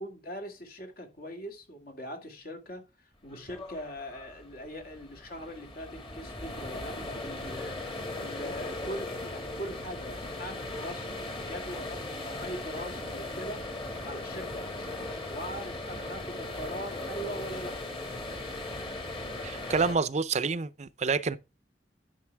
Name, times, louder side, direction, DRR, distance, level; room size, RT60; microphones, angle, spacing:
voice 1, 0.0-7.8 8.1-11.1 11.4-17.7, equal, 60° left, 2.4 m, -41 dB
sound 1, 3.3-19.9, left 2 dB, 30° left, 2.0 m, -38 dB
voice 2, 19.4-21.4, right 4 dB, 40° right, 0.6 m, -28 dB
11.0 x 6.7 x 3.5 m
head